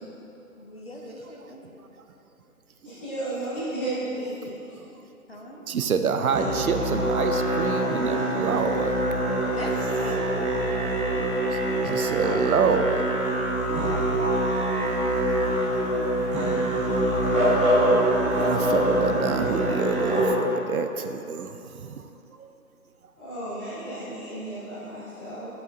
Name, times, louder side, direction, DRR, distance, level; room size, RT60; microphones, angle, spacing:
voice 1, 0.6-1.9 5.3-5.6 7.8-9.0 9.4-10.5 11.1-11.4 13.7-13.9, left 1 dB, 45° left, -1 dB, 0.5 m, -40 dB
voice 2, 2.8-4.8 23.2-25.5, right 1 dB, 10° left, -14 dB, 1.0 m, -33 dB
voice 3, 5.7-8.9 11.1-11.2 11.8-13.1 16.4-16.5 17.1-17.2 17.6-17.8 18.2-22.0 22.4-22.5, right 6 dB, 70° right, 8 dB, 0.5 m, -27 dB
Musical instrument, 6.3-20.3, right 1 dB, 20° right, 0.8 m, -24 dB
8.0 x 5.4 x 2.5 m, 2.8 s
figure-of-eight pair, 150°, 46 cm